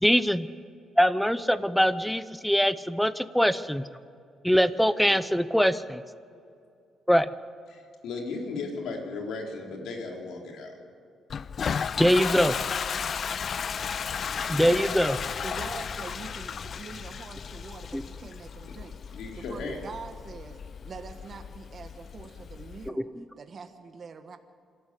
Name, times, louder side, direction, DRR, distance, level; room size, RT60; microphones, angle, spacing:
voice 1, 0.0-0.5 1.0-3.8 4.4-6.0 7.1-7.3 12.0-12.5 14.5-15.2 17.9-18.0 23.2-23.3, equal, ahead, 14 dB, 0.7 m, -23 dB
voice 2, 7.7-10.8 14.3-14.9 19.1-19.8, left 3 dB, 80° left, 1 dB, 3.8 m, -36 dB
Toilet flush, 11.3-22.9, left 6 dB, 50° left, 0.4 m, -34 dB
voice 3, 15.4-24.4, right 5 dB, 45° right, 7 dB, 1.4 m, -44 dB
26.5 x 12.5 x 8.4 m, 2.4 s
cardioid pair, 90°, 0 cm